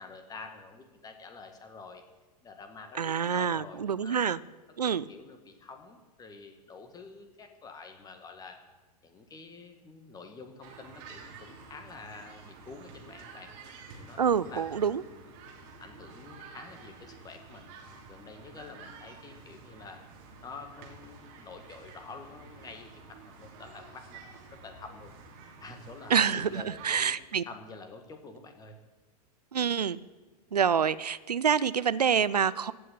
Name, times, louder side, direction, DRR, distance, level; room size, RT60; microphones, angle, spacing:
voice 1, 0.0-2.0 2.4-4.2 4.8-8.6 9.0-13.5 13.9-15.2 15.8-17.7 18.1-20.0 20.4-25.1 25.6-27.2 27.5-28.8, left 4 dB, 20° left, 6 dB, 2.0 m, -48 dB
voice 2, 2.9-4.4 4.8-5.1 14.2-15.0 26.1-27.4 29.5-30.0 30.5-32.7, right 7 dB, 75° right, 18 dB, 0.5 m, -27 dB
sound 1, 10.6-27.0, right 4 dB, 40° right, 3.0 m, -50 dB
15.5 x 6.4 x 9.4 m, 1.3 s
figure-of-eight pair, 95°, 20 cm